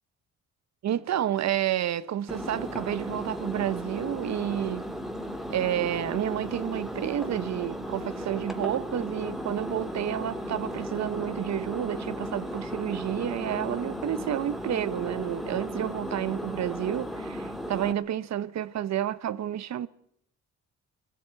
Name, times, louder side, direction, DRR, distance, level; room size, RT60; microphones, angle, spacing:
voice 1, 0.8-4.9 5.5-19.9, right 11 dB, 60° right, 1.0 m, -30 dB
Engine, 2.3-17.9, equal, ahead, 2.0 m, -35 dB
21.0 x 14.5 x 9.1 m
cardioid pair, 90°, 30 cm